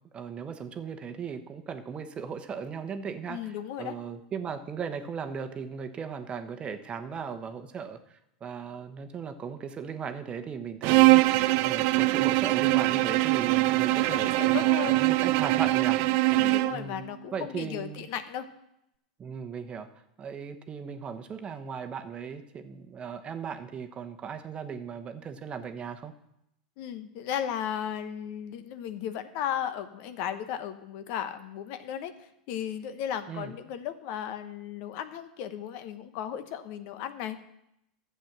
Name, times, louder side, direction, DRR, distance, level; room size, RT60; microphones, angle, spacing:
voice 1, 0.1-16.0 16.7-17.0 17.3-18.1 19.2-19.9 20.2-26.1 33.3-33.5, right 6 dB, 25° right, 7 dB, 1.1 m, -37 dB
voice 2, 3.3-4.0 13.8-15.1 16.3-18.5 26.8-37.4, left 9 dB, 55° left, 11 dB, 1.0 m, -35 dB
Bowed string instrument, 10.8-16.8, right 20 dB, 55° right, 0.5 m, -23 dB
11.5 x 8.0 x 6.0 m, 0.81 s
hypercardioid pair, 105°, 4 cm